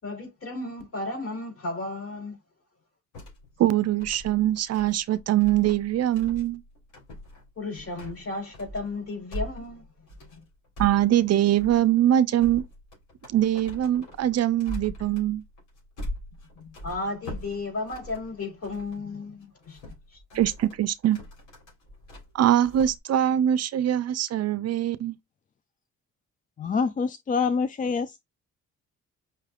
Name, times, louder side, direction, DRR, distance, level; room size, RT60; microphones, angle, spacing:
voice 1, 0.0-2.4 7.6-9.9 10.3-10.4 16.5-19.9, left 2 dB, 50° left, 3.5 m, -34 dB
sound 1, 3.1-19.0 19.4-23.0, equal, 75° left, 3.5 m, -42 dB
voice 2, 3.6-6.6 10.8-12.6 13.3-15.4 20.3-21.2 22.3-25.2, right 12 dB, 55° right, 0.5 m, -23 dB
voice 3, 26.6-28.2, left 5 dB, 30° left, 0.4 m, -26 dB
5.6 x 3.2 x 2.4 m
cardioid pair, 90°, 30 cm